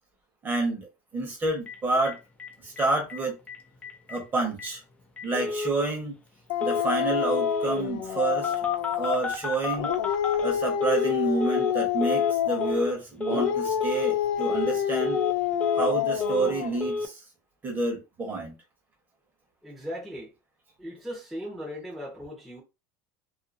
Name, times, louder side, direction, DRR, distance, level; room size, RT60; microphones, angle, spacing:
voice 1, 0.4-2.2 2.6-3.3 4.1-4.8 5.2-6.1 6.6-8.5 9.0-9.9 10.4-15.2 15.7-17.2 17.6-18.5, right 3 dB, 20° right, 1.1 m, -29 dB
Telephone, 1.7-1.8 2.0-2.1 2.4-2.5 2.8-3.2 3.5-3.6 3.8-4.2 4.6-4.7 5.2-5.8 6.6-6.8 7.1-7.8 8.4-11.1 11.4-11.7 12.0-12.3 12.6-12.9 13.2-13.5 13.8-14.1 14.4-14.7 15.0-15.9 16.2-16.5 16.8-17.1, left 3 dB, 15° left, 0.5 m, -31 dB
Dog, 6.5-9.3 9.7-12.8 13.3-16.8, left 10 dB, 80° left, 0.4 m, -27 dB
voice 2, 19.6-20.3 20.8-22.6, equal, ahead, 0.9 m, -38 dB
2.6 x 2.6 x 2.5 m
cardioid pair, 145°, 9 cm